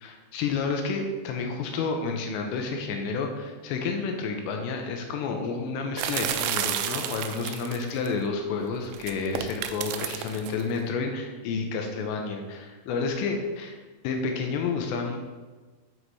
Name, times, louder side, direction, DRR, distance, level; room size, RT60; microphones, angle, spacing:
voice 1, 0.0-13.8 14.0-15.2, left 4 dB, 80° left, 3 dB, 3.0 m, -30 dB
sound 1, 6.0-8.1 8.9-10.6, right 10 dB, 85° right, 2.7 m, -31 dB
8.0 x 4.7 x 4.1 m, 1.3 s
omnidirectional pair, 5.2 m